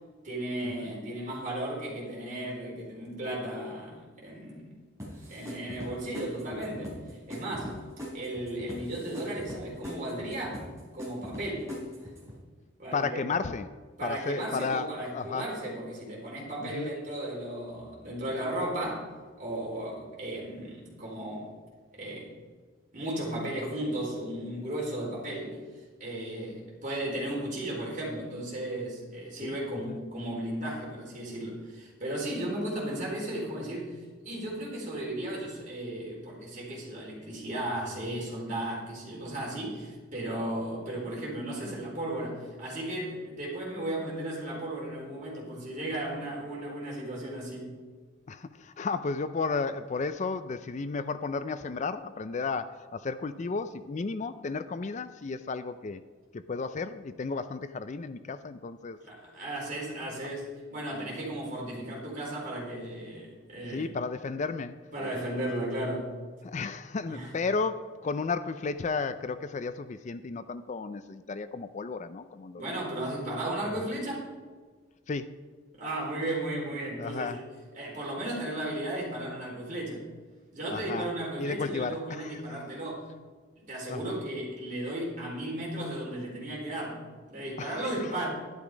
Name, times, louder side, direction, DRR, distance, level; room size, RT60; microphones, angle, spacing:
voice 1, 0.2-4.7 5.3-6.9 7.3-7.8 8.1-10.6 10.9-11.7 12.8-13.2 14.0-19.1 19.4-21.5 21.9-22.3 22.9-25.6 26.0-47.7 59.0-63.9 64.3-64.4 64.9-66.1 67.1-67.3 72.6-74.3 75.8-77.4 77.7-80.0 80.5-83.1 83.6-87.0 87.3-88.3, right 1 dB, 40° right, -4 dB, 4.5 m, -35 dB
sound 1, 5.0-12.4, equal, 15° right, 4.1 m, -42 dB
voice 2, 12.9-13.7 14.0-14.9 15.1-15.4 16.7-16.9 29.4-29.5 48.3-48.4 48.8-56.0 56.5-59.0 63.7-64.8 66.4-72.6 75.1-75.3 77.0-77.4 80.7-81.1 81.4-82.4 83.9-84.1 87.6-87.9, left 4 dB, 35° left, 12 dB, 0.4 m, -33 dB
12.0 x 11.0 x 5.1 m, 1.5 s
head